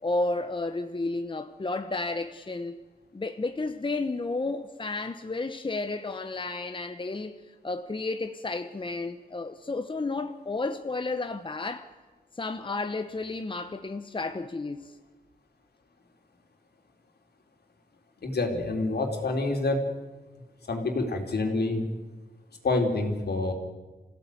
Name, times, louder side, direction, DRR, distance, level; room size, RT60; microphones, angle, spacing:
voice 1, 0.0-2.8 3.1-11.9 12.4-14.9, left 3 dB, 30° left, 1.0 m, -32 dB
voice 2, 18.2-19.9 20.6-21.9 22.6-23.5, left 2 dB, 75° left, 3.9 m, -27 dB
27.0 x 16.0 x 9.4 m
wide cardioid pair, 105°, 17 cm